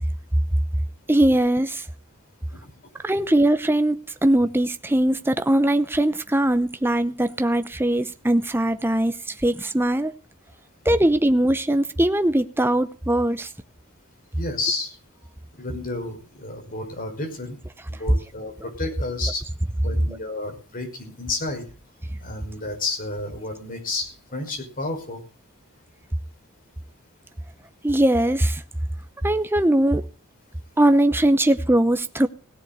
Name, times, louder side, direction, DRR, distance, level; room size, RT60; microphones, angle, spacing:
voice 1, 1.1-1.9 3.0-10.1 10.8-13.5 27.8-28.6 29.2-30.1 30.8-32.3, right 1 dB, 10° right, 0.7 m, -20 dB
voice 2, 14.3-14.9 15.6-17.6 17.9-19.4 19.8-21.6 22.2-25.2, left 2 dB, 40° left, 5.6 m, -31 dB
17.0 x 7.6 x 7.8 m
head